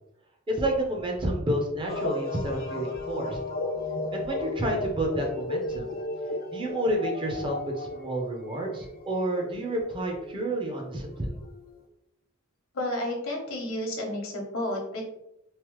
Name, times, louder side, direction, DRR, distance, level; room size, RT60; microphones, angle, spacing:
voice 1, 0.5-3.4 4.1-6.0 6.5-11.3, right 1 dB, 25° right, 1 dB, 0.5 m, -30 dB
sound 1, 1.9-11.8, left 2 dB, 45° left, 0.4 m, -35 dB
voice 2, 12.7-15.1, left 1 dB, 75° left, 0 dB, 0.9 m, -31 dB
3.1 x 2.0 x 3.0 m, 0.82 s
head